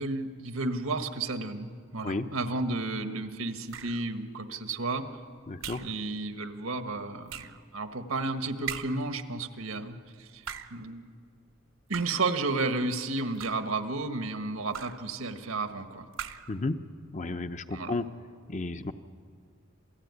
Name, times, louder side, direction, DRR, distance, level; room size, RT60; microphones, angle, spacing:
voice 1, 0.0-5.1 5.8-10.4 10.7-11.0 11.9-16.0 17.7-18.0, right 3 dB, 85° right, 8 dB, 1.5 m, -32 dB
sound 1, 3.7-4.1 5.6-6.0 7.3-7.6 8.7-9.1 10.3-10.8 11.9-12.3 13.2-13.8 14.7-15.1 16.1-16.6, right 8 dB, 65° right, 1.0 m, -40 dB
voice 2, 5.5-5.8 16.5-16.8 17.1-18.0 18.5-18.9, left 2 dB, 35° left, 9 dB, 0.8 m, -32 dB
27.5 x 15.5 x 9.6 m, 2.1 s
head